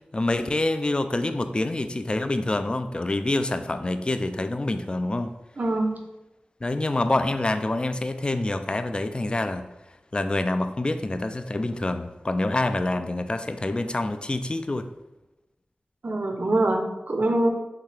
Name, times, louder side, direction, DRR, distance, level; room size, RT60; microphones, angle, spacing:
voice 1, 0.1-5.3 6.6-9.7 10.1-14.9, left 2 dB, 30° left, 9 dB, 0.3 m, -26 dB
voice 2, 5.6-6.0 16.0-17.5, right 2 dB, 60° right, 4 dB, 0.7 m, -24 dB
5.7 x 2.8 x 3.3 m, 0.98 s
wide cardioid pair, 85°, 3 cm